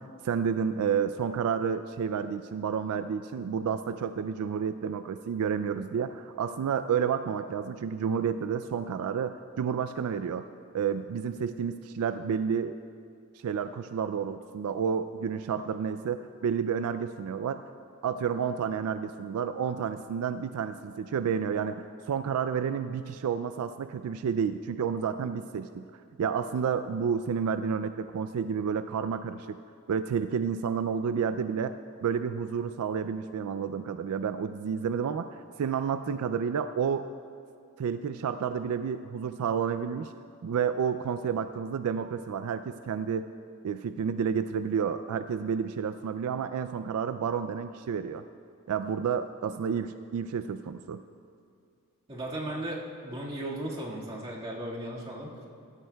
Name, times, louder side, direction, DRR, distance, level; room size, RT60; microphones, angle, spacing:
voice 1, 0.0-10.5 10.7-12.8 13.4-17.6 18.0-25.9 26.2-29.6 29.9-37.1 37.8-40.1 40.4-43.3 43.6-48.2 48.7-51.0, right 7 dB, 80° right, 11 dB, 0.3 m, -30 dB
voice 2, 52.1-55.3, right 1 dB, 25° right, -5 dB, 1.8 m, -36 dB
17.5 x 13.0 x 2.3 m, 2.3 s
head